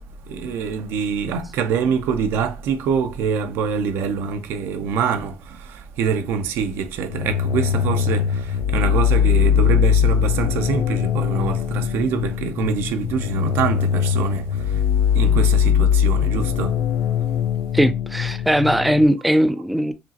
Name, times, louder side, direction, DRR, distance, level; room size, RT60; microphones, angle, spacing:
voice 1, 0.3-14.8 15.1-16.8, right 6 dB, 75° right, 0.6 m, -25 dB
sound 1, 7.1-19.0, left 8 dB, 70° left, 0.4 m, -21 dB
voice 2, 17.7-19.9, equal, ahead, 0.3 m, -19 dB
5.0 x 3.0 x 2.8 m
cardioid pair, 135°, 4 cm